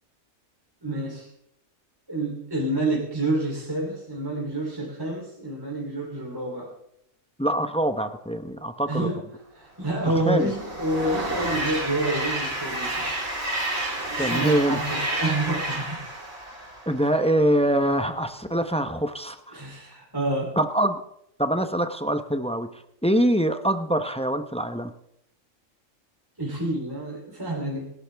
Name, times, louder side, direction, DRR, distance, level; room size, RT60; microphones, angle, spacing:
voice 1, 0.8-1.3 2.1-6.7 8.9-9.2 9.6-13.1 14.2-16.0 19.5-20.5 26.4-27.9, right 1 dB, 15° right, -3 dB, 3.4 m, -28 dB
voice 2, 7.4-9.1 10.3-10.5 14.2-14.8 16.9-19.6 20.6-21.0 21.4-22.7 23.0-24.9, right 1 dB, 5° left, 8 dB, 0.6 m, -24 dB
Train, 9.8-17.3, right 1 dB, 70° right, 4.3 m, -30 dB
26.5 x 11.5 x 3.5 m, 0.75 s
omnidirectional pair, 1.5 m